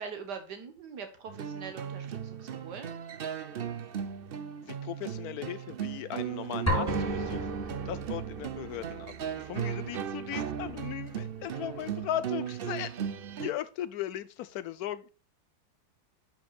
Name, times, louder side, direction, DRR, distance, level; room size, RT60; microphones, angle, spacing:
voice 1, 0.0-2.9 9.7-9.9, right 6 dB, 85° right, 1.9 m, -42 dB
sound 1, 1.3-13.5, right 8 dB, 60° right, 0.6 m, -36 dB
voice 2, 4.8-7.4 7.9-12.9 13.4-15.1, left 12 dB, 70° left, 1.1 m, -37 dB
sound 2, 6.7-8.5, equal, 10° left, 1.5 m, -32 dB
9.7 x 6.0 x 2.4 m
omnidirectional pair, 1.7 m